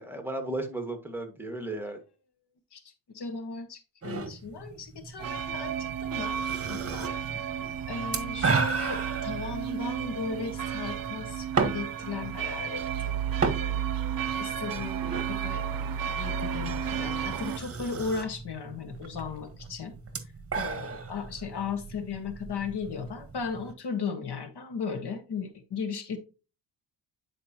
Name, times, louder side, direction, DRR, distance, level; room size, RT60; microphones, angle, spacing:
voice 1, 0.0-2.0 7.3-8.0, right 2 dB, 5° right, 5 dB, 1.8 m, -36 dB
voice 2, 3.1-13.2 13.5-13.8 14.4-20.0 20.5-26.2, left 5 dB, 55° left, 7 dB, 1.5 m, -36 dB
sound 1, 4.0-23.7, right 4 dB, 30° right, 1.5 m, -36 dB
sound 2, 5.2-17.6, right 8 dB, 45° right, 0.8 m, -32 dB
9.7 x 5.0 x 2.9 m, 0.33 s
cardioid pair, 95°, 47 cm